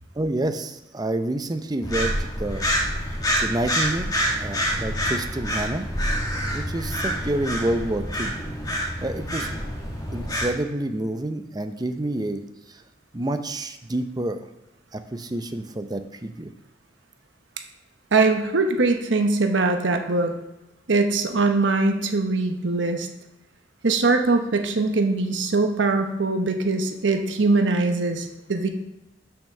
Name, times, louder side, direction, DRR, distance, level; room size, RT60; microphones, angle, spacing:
voice 1, 0.2-2.7 3.4-4.1 4.4-5.9 6.5-8.3 9.0-9.6 10.1-12.4 12.7-12.8 13.1-14.4 14.9-16.5, right 1 dB, 20° right, 8 dB, 0.6 m, -28 dB
sound 1, 1.8-10.5, equal, 20° left, 1.6 m, -27 dB
voice 2, 18.1-20.3 20.9-23.1 23.8-28.7, right 3 dB, 90° right, 5 dB, 0.9 m, -22 dB
7.2 x 5.9 x 6.5 m, 0.98 s
head